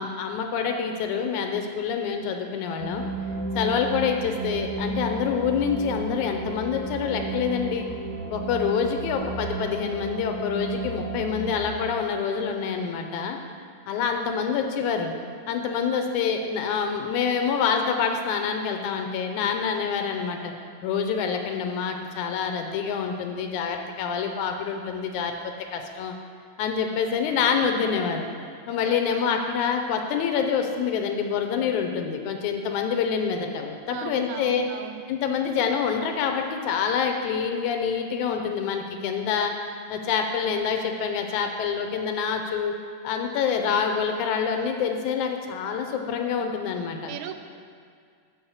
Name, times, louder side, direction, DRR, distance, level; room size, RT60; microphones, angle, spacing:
voice 1, 0.0-3.0 3.6-7.9 8.3-13.4 13.9-15.1 15.5-20.5 20.8-26.1 26.6-28.3 28.7-34.7 35.1-39.5 39.9-42.8 43.0-47.1, left 6 dB, 85° left, 4 dB, 2.0 m, -26 dB
sound 1, 2.8-11.7, right 2 dB, 55° right, 1.9 m, -33 dB
voice 2, 8.4-8.9 14.1-14.4 28.9-29.2 33.9-35.0 47.0-47.4, right 10 dB, 85° right, 8 dB, 2.0 m, -38 dB
6.4 x 5.6 x 7.0 m, 2.1 s
omnidirectional pair, 3.5 m